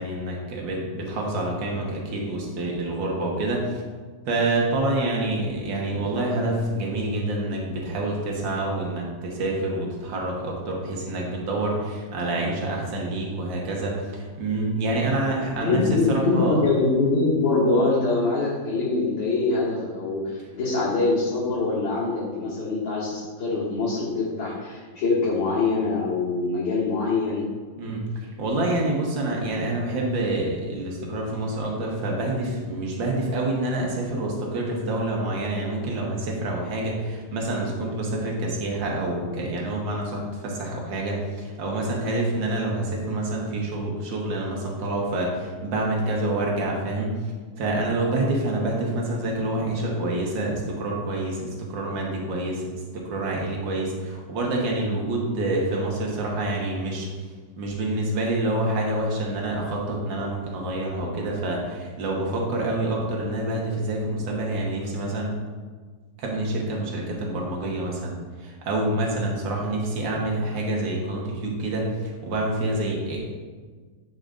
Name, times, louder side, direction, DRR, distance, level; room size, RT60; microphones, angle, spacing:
voice 1, 0.0-3.8 4.3-16.6 27.8-47.2 47.6-52.7 52.9-57.1 57.6-65.3 66.2-68.1 68.4-73.2, right 2 dB, 80° right, -1 dB, 1.9 m, -27 dB
voice 2, 15.6-27.5, left 3 dB, 80° left, -11 dB, 2.3 m, -24 dB
10.0 x 5.1 x 2.5 m, 1.5 s
omnidirectional pair, 2.0 m